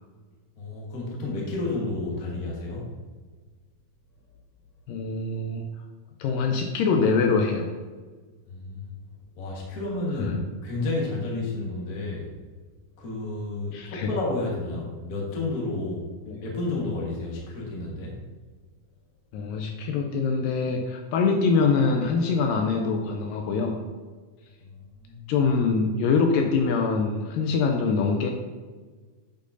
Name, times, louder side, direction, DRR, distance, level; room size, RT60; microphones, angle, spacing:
voice 1, 0.6-2.9 8.5-9.0 9.3-12.3 13.0-16.1 16.4-18.2 24.6-25.3, left 2 dB, 55° left, -3 dB, 1.0 m, -31 dB
voice 2, 4.9-5.7 6.2-7.7 10.2-10.3 13.7-14.1 16.3-16.4 19.3-23.8 25.3-28.3, left 4 dB, 80° left, 3 dB, 2.1 m, -24 dB
10.0 x 5.2 x 2.7 m, 1.4 s
omnidirectional pair, 4.2 m